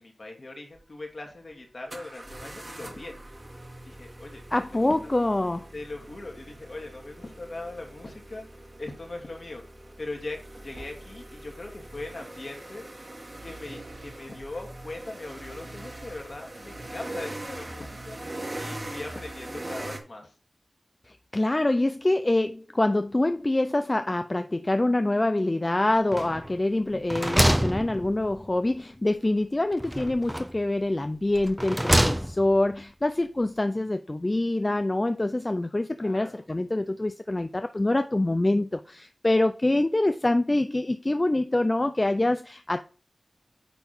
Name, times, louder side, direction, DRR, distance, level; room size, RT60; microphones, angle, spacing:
voice 1, 0.0-3.1 3.9-4.4 4.7-4.9 5.7-8.5 8.8-9.6 10.0-12.8 13.4-18.2 18.6-20.3 36.0-36.4, left 2 dB, 55° left, 2.4 m, -40 dB
sound 1, 0.7-0.8 1.9-20.0, right 1 dB, 35° right, 1.6 m, -42 dB
voice 2, 4.5-5.7 21.1-42.8, left 2 dB, 30° left, 0.4 m, -25 dB
sound 2, 26.1-26.6 26.9-28.5 29.8-30.7 31.3-32.6, equal, 10° right, 0.8 m, -26 dB
9.1 x 3.6 x 5.9 m
wide cardioid pair, 85°, 0 cm